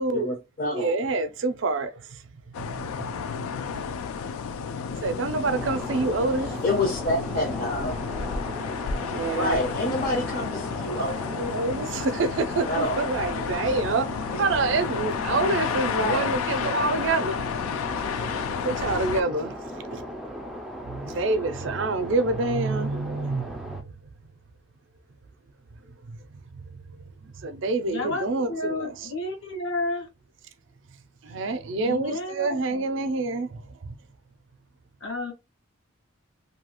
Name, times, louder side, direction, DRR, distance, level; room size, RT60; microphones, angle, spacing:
voice 1, 0.1-1.0 6.6-8.0 9.1-11.1 12.6-13.0 14.3-14.4 15.7-16.3, left 1 dB, 45° left, 0.6 m, -28 dB
voice 2, 0.7-2.2 2.6-3.8 5.0-6.6 9.0-9.6 11.3-14.1 14.4-17.4 18.6-20.0 20.8-24.0 26.1-26.2 26.5-26.6 27.2-29.1 31.2-33.9, right 3 dB, 65° right, 0.4 m, -27 dB
sound 1, 2.5-19.2, left 6 dB, 90° left, 0.3 m, -31 dB
sound 2, 5.5-23.8, equal, ahead, 0.3 m, -38 dB
voice 3, 27.8-30.1 31.8-32.8 35.0-35.3, left 2 dB, 65° left, 1.1 m, -31 dB
2.6 x 2.3 x 2.9 m
head